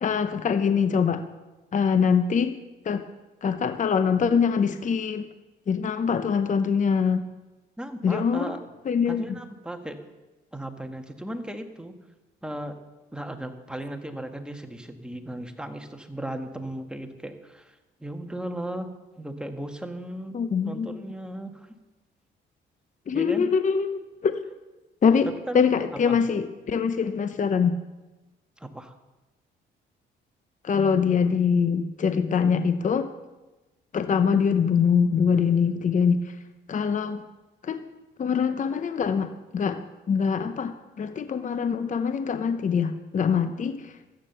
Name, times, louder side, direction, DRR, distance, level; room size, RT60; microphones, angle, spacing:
voice 1, 0.0-1.2 1.7-2.6 2.9-3.0 3.4-5.3 5.7-7.3 8.0-8.5 8.9-9.2 20.3-21.0 23.1-24.4 25.0-27.8 30.6-33.1 33.9-36.2 36.7-37.2 37.6-37.8 38.2-43.9, left 6 dB, 40° left, 10 dB, 0.8 m, -24 dB
voice 2, 7.8-8.6 9.1-10.0 10.5-11.9 12.4-12.8 13.1-18.9 19.2-20.3 20.6-21.7 23.1-23.5 25.2-25.7 26.1-26.2 28.6-28.9, right 1 dB, 5° right, 6 dB, 1.5 m, -36 dB
14.0 x 9.0 x 6.9 m, 1.1 s
cardioid pair, 90°, 20 cm